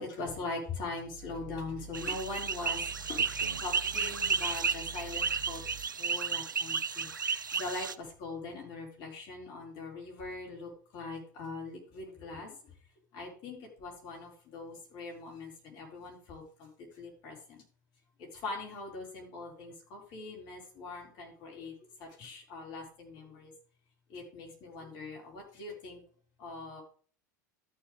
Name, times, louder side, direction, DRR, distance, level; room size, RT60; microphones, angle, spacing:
voice 1, 0.0-2.8 3.1-3.2 3.6-5.6 6.0-7.1 7.5-12.6 13.1-16.7 17.0-17.6 18.3-21.7 22.0-23.5 24.1-26.0 26.4-26.8, left 3 dB, 50° left, -1 dB, 4.9 m, -41 dB
Growling, 1.0-5.9, right 6 dB, 30° right, 2.3 m, -48 dB
sound 1, 1.9-7.9, right 5 dB, 85° right, 0.5 m, -33 dB
13.5 x 7.3 x 3.4 m, 0.43 s
figure-of-eight pair, 80°, 10 cm